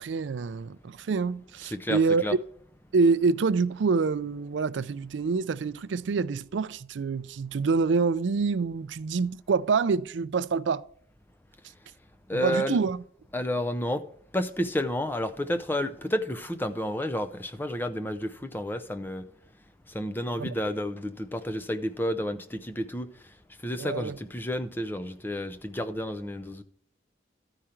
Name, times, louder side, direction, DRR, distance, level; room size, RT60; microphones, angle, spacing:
voice 1, 0.0-2.3 2.9-10.8 12.3-13.0 20.4-20.5 23.8-24.2, right 4 dB, 75° right, 0.4 m, -26 dB
voice 2, 1.7-2.3 12.3-12.8 13.3-14.0 14.3-19.3 19.9-23.1 23.6-26.6, equal, 10° left, 0.5 m, -30 dB
13.5 x 5.0 x 4.4 m
head